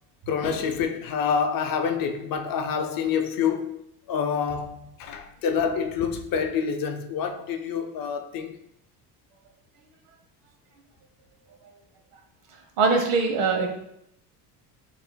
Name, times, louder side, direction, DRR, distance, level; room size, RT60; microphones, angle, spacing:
voice 1, 0.3-3.8 4.1-8.6, left 6 dB, 50° left, 6 dB, 0.6 m, -27 dB
voice 2, 12.8-13.7, right 4 dB, 70° right, 3 dB, 1.0 m, -22 dB
6.7 x 2.7 x 2.2 m, 0.76 s
supercardioid pair, 85°, 46 cm